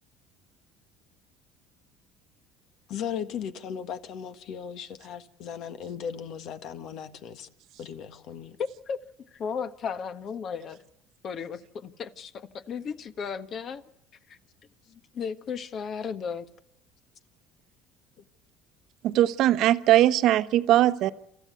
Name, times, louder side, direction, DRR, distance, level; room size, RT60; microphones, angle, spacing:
voice 1, 2.9-7.5 7.8-8.6 18.2-18.3, left 8 dB, 65° left, 1.6 m, -37 dB
voice 2, 8.6-9.0 9.3-10.8 11.2-13.8 14.3-14.4 14.9-16.5, left 6 dB, 50° left, 1.4 m, -35 dB
voice 3, 19.0-21.1, right 13 dB, 65° right, 1.0 m, -20 dB
27.5 x 14.0 x 8.3 m
supercardioid pair, 90°, 0 cm